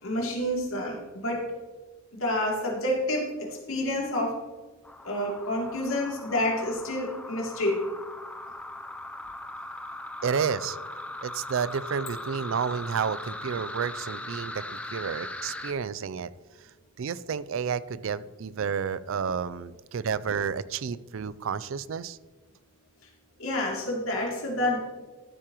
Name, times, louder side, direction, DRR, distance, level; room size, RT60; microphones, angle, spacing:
voice 1, 0.0-1.4 2.2-4.4 5.0-7.8 23.4-24.8, left 1 dB, 80° left, -2 dB, 2.8 m, -28 dB
sound 1, 4.8-15.7, left 1 dB, 5° left, 0.5 m, -39 dB
voice 2, 10.2-10.8 11.2-16.3 17.0-22.2, right 6 dB, 65° right, 17 dB, 0.4 m, -31 dB
13.5 x 8.6 x 3.0 m, 1.3 s
head